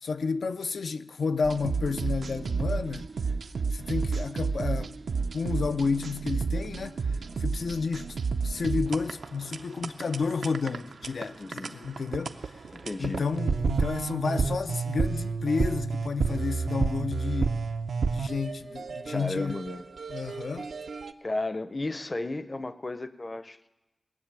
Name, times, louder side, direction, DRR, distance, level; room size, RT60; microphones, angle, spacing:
voice 1, 0.0-3.1 3.7-5.0 5.3-6.9 7.4-8.2 8.4-12.5 13.0-17.5 18.1-19.6 20.1-20.7, left 4 dB, 85° left, 0.5 m, -31 dB
sound 1, 1.4-21.1, right 4 dB, 90° right, 0.6 m, -31 dB
voice 2, 11.4-11.7 12.7-13.2 19.1-19.8 21.2-23.7, left 2 dB, 30° left, 0.6 m, -34 dB
19.5 x 7.3 x 8.8 m
wide cardioid pair, 95°, 0 cm